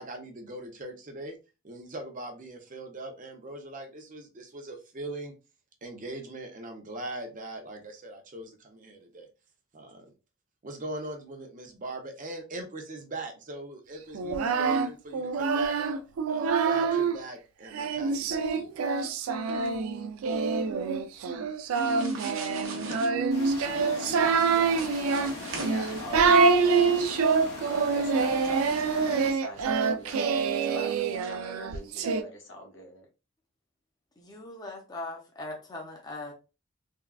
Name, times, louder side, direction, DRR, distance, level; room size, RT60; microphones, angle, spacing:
voice 1, 0.0-1.4 1.6-5.3 5.8-9.3 9.7-10.1 10.6-16.0 16.3-18.8, right 2 dB, 40° right, 0.7 m, -41 dB
Singing, 14.1-17.2 17.7-32.2, right 5 dB, 90° right, 0.4 m, -26 dB
sound 1, 21.7-23.1 24.3-26.0, right 3 dB, 70° right, 0.8 m, -41 dB
voice 2, 22.9-33.1, left 2 dB, 60° left, 1.0 m, -44 dB
sound 2, 23.3-29.3, left 2 dB, 80° left, 1.5 m, -40 dB
voice 3, 34.2-36.3, left 2 dB, 20° left, 0.6 m, -40 dB
3.5 x 2.2 x 2.2 m
head